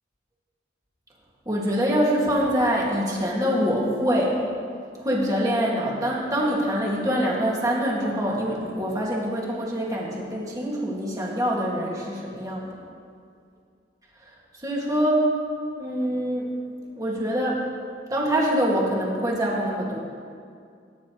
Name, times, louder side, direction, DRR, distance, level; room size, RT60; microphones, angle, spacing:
voice 1, 1.5-4.4 5.0-12.8 14.6-15.3 15.8-16.5 17.0-17.7 18.1-20.0, equal, 20° right, -4 dB, 2.0 m, -24 dB
18.5 x 10.0 x 3.1 m, 2.3 s
head